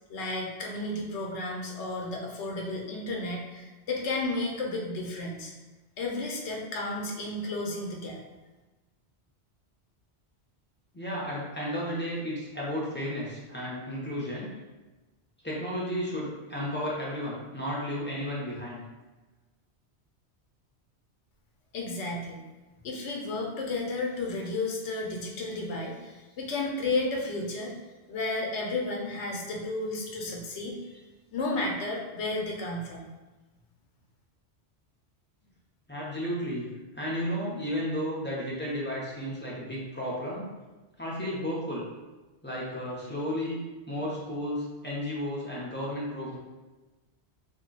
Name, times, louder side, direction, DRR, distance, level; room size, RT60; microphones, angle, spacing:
voice 1, 0.1-5.5 6.0-8.2 21.7-22.4 22.8-27.7 28.1-30.9 31.3-33.1, left 2 dB, 90° left, -1 dB, 1.0 m, -32 dB
voice 2, 10.9-14.5 15.4-18.8 35.9-36.6 36.9-40.4 41.0-41.8 42.4-43.6 43.9-46.4, equal, 10° left, -6 dB, 0.6 m, -33 dB
3.0 x 2.3 x 3.9 m, 1.2 s
omnidirectional pair, 1.1 m